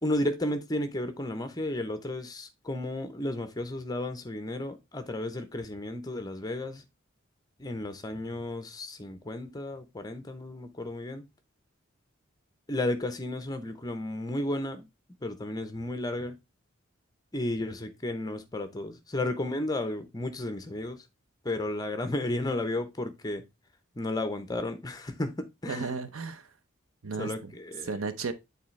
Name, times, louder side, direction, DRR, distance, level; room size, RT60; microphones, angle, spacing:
voice 1, 0.0-6.8 7.6-11.3 12.7-14.9 15.2-16.4 17.3-21.1 21.4-23.4 23.9-25.9 27.2-28.0, left 1 dB, 20° left, 0.7 m, -33 dB
voice 2, 25.7-26.5 27.0-27.5 27.8-28.3, right 4 dB, 85° right, 0.8 m, -34 dB
8.5 x 4.0 x 3.1 m
head